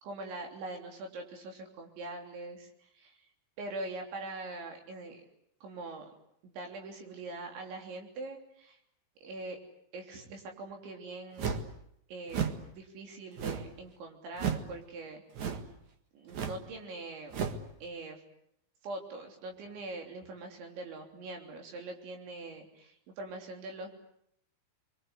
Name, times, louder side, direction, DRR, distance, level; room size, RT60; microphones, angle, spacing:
voice 1, 0.0-3.2 3.6-5.2 5.6-6.1 6.4-8.8 9.2-9.6 9.9-11.6 12.1-15.2 16.1-17.4 17.8-18.2 18.8-23.9, right 2 dB, 80° right, 3 dB, 5.7 m, -43 dB
sound 1, 11.4-11.7 12.3-12.6 13.4-13.8 14.3-14.7 15.3-15.7 16.3-16.6 17.3-17.6, right 7 dB, 50° right, 2.5 m, -34 dB
29.0 x 24.0 x 8.2 m, 0.73 s
omnidirectional pair, 5.2 m